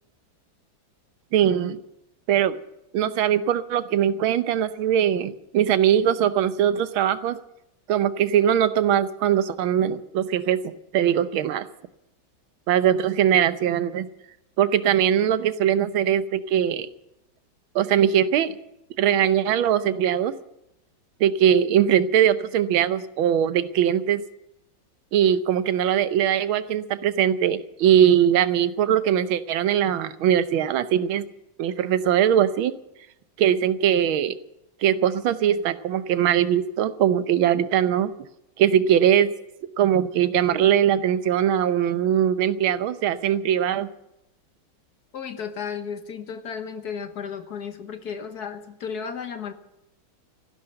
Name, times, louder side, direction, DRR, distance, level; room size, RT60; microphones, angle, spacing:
voice 1, 1.3-1.8 2.3-2.6 2.9-7.4 7.9-11.7 12.7-14.1 14.6-16.9 17.7-18.5 19.0-20.3 21.2-24.2 25.1-31.2 31.6-32.7 33.4-34.4 34.8-38.1 38.6-39.3 39.8-43.9, right 10 dB, 80° right, 13 dB, 1.6 m, -21 dB
voice 2, 45.1-49.5, left 6 dB, 55° left, 8 dB, 1.5 m, -34 dB
15.0 x 11.5 x 7.7 m, 0.84 s
omnidirectional pair, 2.2 m